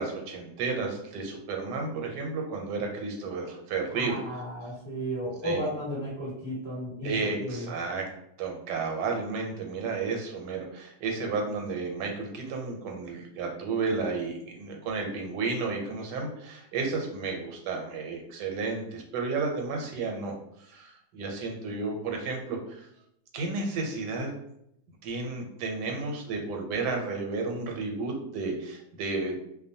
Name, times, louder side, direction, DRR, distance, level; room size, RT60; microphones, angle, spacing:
voice 1, 0.0-4.2 5.4-5.6 7.0-8.1 8.4-22.9 23.3-24.3 25.0-29.4, right 4 dB, 85° right, 2 dB, 1.2 m, -32 dB
voice 2, 3.9-7.7, equal, 25° left, -9 dB, 1.2 m, -34 dB
2.6 x 2.1 x 2.6 m, 0.76 s
omnidirectional pair, 1.8 m